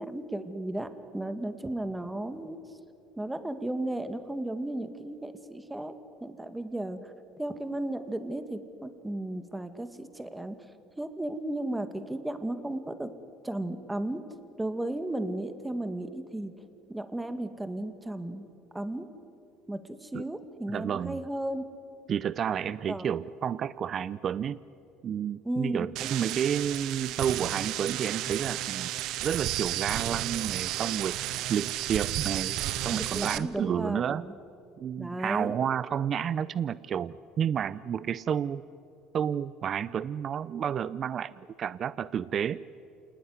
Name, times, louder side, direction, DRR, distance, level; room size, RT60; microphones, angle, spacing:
voice 1, 0.0-2.6 3.2-5.9 6.2-10.6 11.0-13.1 13.4-14.2 14.6-16.5 16.9-18.5 18.7-19.1 19.7-21.6 22.9-23.1 25.4-25.9 32.9-34.3 35.0-35.5, right 1 dB, 10° right, 9 dB, 2.1 m, -34 dB
voice 2, 20.7-21.2 22.1-24.6 25.0-28.9 29.2-31.2 31.5-32.6 32.8-34.2 34.8-38.6 39.1-41.3 41.6-42.6, right 8 dB, 45° right, 18 dB, 0.5 m, -30 dB
sound 1, 26.0-33.4, right 14 dB, 65° right, 0.9 m, -32 dB
28.0 x 19.0 x 9.7 m, 2.8 s
hypercardioid pair, 70°, 0 cm